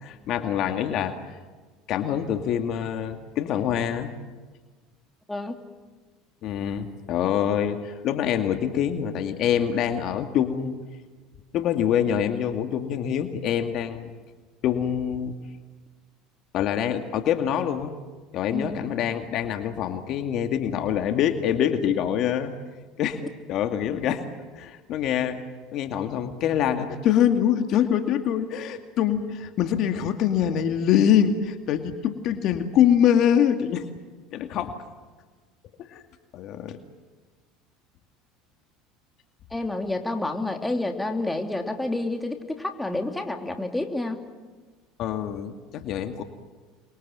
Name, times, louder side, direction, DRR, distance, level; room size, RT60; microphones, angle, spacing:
voice 1, 0.0-1.1 1.9-4.1 6.4-10.8 11.5-14.1 14.6-15.3 16.5-17.9 18.3-22.5 23.0-23.2 23.5-24.2 24.6-25.4 25.7-33.8 34.3-34.7 35.9-36.0 36.3-36.8 45.0-46.2, left 9 dB, 55° left, 6 dB, 2.2 m, -24 dB
voice 2, 18.5-18.9 39.5-44.2, left 2 dB, 10° left, 4 dB, 3.1 m, -29 dB
27.5 x 23.0 x 7.6 m, 1.3 s
supercardioid pair, 90°, 0 cm